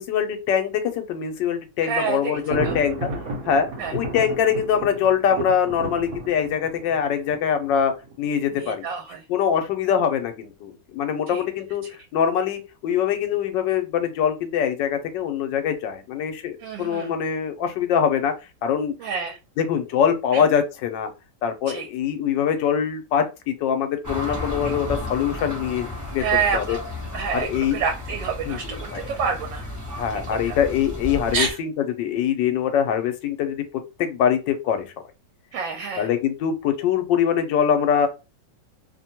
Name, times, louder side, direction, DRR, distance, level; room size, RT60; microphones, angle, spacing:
voice 1, 0.0-3.1 3.4-8.9 9.3-11.8 12.1-18.3 18.6-18.9 19.6-21.1 21.4-26.3 26.5-26.8 27.3-27.8 28.5-29.0 30.0-31.7 32.0-33.6 34.0-34.9 36.0-38.1, left 8 dB, 80° left, 7 dB, 1.3 m, -23 dB
voice 2, 1.8-2.8 3.8-3.9 8.5-9.2 11.3-11.4 16.6-17.1 19.0-19.4 20.3-20.4 21.7-21.9 24.6-24.7 26.2-26.8 27.1-29.6 30.3-30.6 31.3-31.6 35.5-36.1, right 6 dB, 85° right, 3 dB, 1.3 m, -28 dB
Thunder, 2.3-8.2, right 2 dB, 60° right, 1.1 m, -33 dB
sound 1, 24.0-31.5, left 1 dB, 15° right, 0.7 m, -33 dB
3.1 x 2.2 x 2.8 m, 0.28 s
omnidirectional pair, 2.0 m